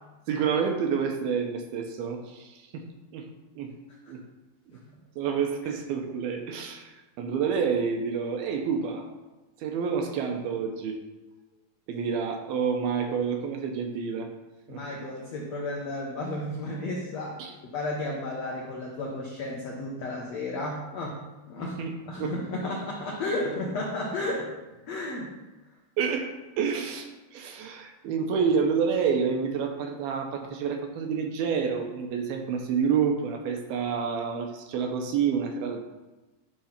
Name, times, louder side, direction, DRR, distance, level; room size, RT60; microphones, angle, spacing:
voice 1, 0.3-2.9 3.1-3.3 3.6-3.8 4.1-4.2 5.2-9.1 9.6-11.0 11.9-14.3 14.7-14.8 17.4-17.5 21.6-22.8 26.0-35.8, right 6 dB, 75° right, 4 dB, 2.6 m, -29 dB
voice 2, 14.7-17.4 17.7-21.2 21.5-21.8 22.0-24.5 24.9-25.3, left 2 dB, 75° left, -2 dB, 1.5 m, -33 dB
10.5 x 3.8 x 5.8 m, 1.1 s
omnidirectional pair, 4.6 m